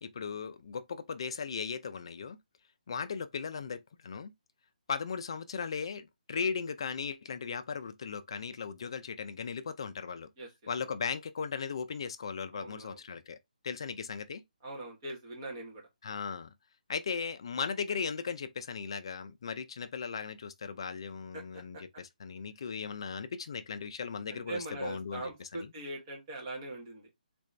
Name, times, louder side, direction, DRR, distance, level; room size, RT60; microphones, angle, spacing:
voice 1, 0.0-2.4 2.9-4.3 4.9-10.3 10.7-13.4 13.6-14.4 16.0-16.5 16.9-25.7, left 6 dB, 35° left, 0.3 m, -37 dB
voice 2, 12.5-13.0 14.6-15.8 21.3-21.8 24.3-27.1, right 2 dB, 20° right, 1.0 m, -41 dB
3.7 x 2.6 x 3.2 m
hypercardioid pair, 175°, 5 cm